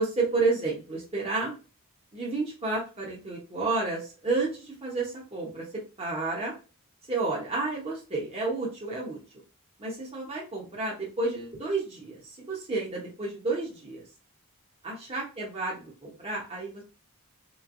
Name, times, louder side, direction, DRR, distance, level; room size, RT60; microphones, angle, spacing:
voice 1, 0.0-1.5 2.1-5.6 6.0-6.5 7.1-9.2 9.8-12.2 12.5-14.0 14.8-16.8, right 3 dB, 25° right, -4 dB, 0.9 m, -31 dB
4.0 x 3.1 x 2.5 m, 0.34 s
head